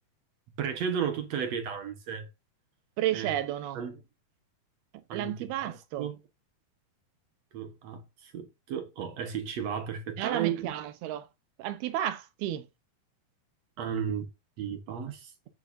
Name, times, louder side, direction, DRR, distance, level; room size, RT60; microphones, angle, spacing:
voice 1, 0.6-2.3 3.1-3.3 3.7-4.0 5.1-5.3 5.6-6.2 7.5-10.7 13.8-14.3 14.6-15.3, right 8 dB, 60° right, 2.0 m, -34 dB
voice 2, 3.0-3.8 4.9-6.1 10.2-11.3 11.6-12.7, right 12 dB, 85° right, 3.0 m, -32 dB
11.5 x 9.3 x 2.7 m
omnidirectional pair, 4.4 m